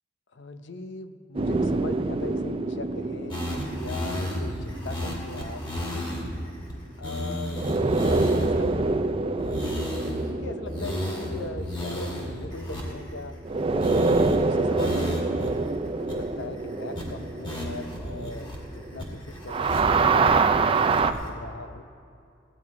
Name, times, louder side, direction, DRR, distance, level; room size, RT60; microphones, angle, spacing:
voice 1, 0.3-3.4 3.8-6.3 7.0-9.7 10.2-13.4 13.7-15.6 16.0-21.8, left 3 dB, 65° left, 9 dB, 0.7 m, -40 dB
sound 1, 1.3-5.8 7.6-13.0 13.4-19.1 19.4-21.1, right 3 dB, 30° right, 0.4 m, -26 dB
sound 2, 3.3-6.3 6.7-6.8 7.0-8.7 9.4-10.3 10.6-13.5 13.8-14.4 14.8-15.5 15.7-15.8 16.1-16.5 16.9-17.0 17.4-18.6 19.0-20.1 20.5-21.3, left 1 dB, 25° left, 2.3 m, -33 dB
16.0 x 9.3 x 4.8 m, 2.5 s
head